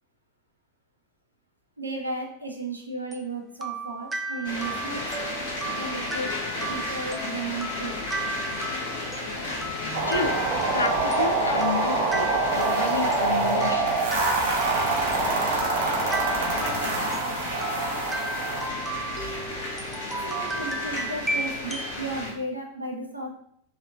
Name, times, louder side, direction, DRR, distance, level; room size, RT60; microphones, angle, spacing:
voice 1, 1.8-5.1 5.8-6.4 6.7-8.0 19.2-19.4 20.2-23.4, right 2 dB, 85° right, 2 dB, 0.5 m, -34 dB
sound 1, 3.1-22.0, right 2 dB, 5° right, 0.3 m, -35 dB
sound 2, 4.4-22.3, left 2 dB, 55° left, 0.7 m, -33 dB
sound 3, 9.9-18.7, right 3 dB, 55° right, 0.8 m, -26 dB
voice 2, 11.2-12.3 12.5-14.0, left 4 dB, 75° left, 6 dB, 0.3 m, -29 dB
2.8 x 2.5 x 2.7 m, 0.68 s
figure-of-eight pair, 90°, 0 cm